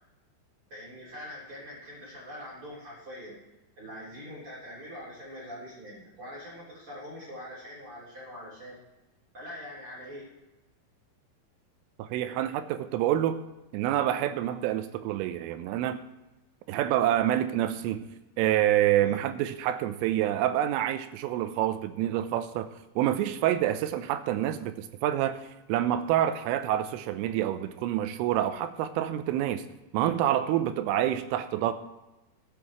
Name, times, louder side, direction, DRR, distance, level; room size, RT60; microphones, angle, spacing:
voice 1, 0.7-3.4 3.8-8.8 9.3-10.3 19.0-19.2, equal, 30° right, -7 dB, 3.9 m, -43 dB
voice 2, 12.0-13.4 13.7-16.0 16.7-18.1 18.4-22.7 23.0-25.4 25.7-29.6 29.9-31.7, right 12 dB, 85° right, 10 dB, 3.3 m, -27 dB
20.0 x 8.4 x 3.1 m, 1.0 s
omnidirectional pair, 5.7 m